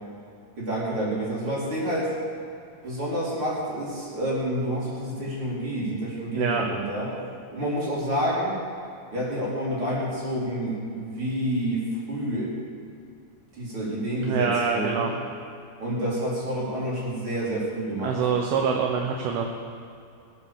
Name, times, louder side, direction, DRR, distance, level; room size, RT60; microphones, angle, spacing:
voice 1, 0.6-2.1 2.8-7.1 7.5-8.6 9.1-12.5 13.5-15.1 15.8-18.2, equal, 30° right, -7 dB, 4.9 m, -28 dB
voice 2, 6.3-6.7 14.2-15.1 18.0-19.5, right 6 dB, 70° right, 2 dB, 2.7 m, -25 dB
21.0 x 8.2 x 7.0 m, 2.5 s
omnidirectional pair, 4.9 m